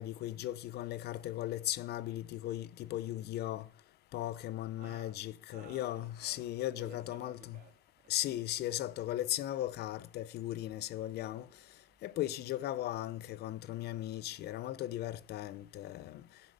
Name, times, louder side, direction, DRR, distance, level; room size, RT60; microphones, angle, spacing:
voice 1, 0.0-3.7 4.1-7.6 8.1-11.5 12.0-16.2, left 14 dB, 75° left, 0.7 m, -37 dB
voice 2, 4.8-5.2 5.5-6.5 6.8-8.1 10.5-12.0, right 7 dB, 60° right, 3.5 m, -59 dB
12.5 x 10.0 x 5.2 m
cardioid pair, 110°, 17 cm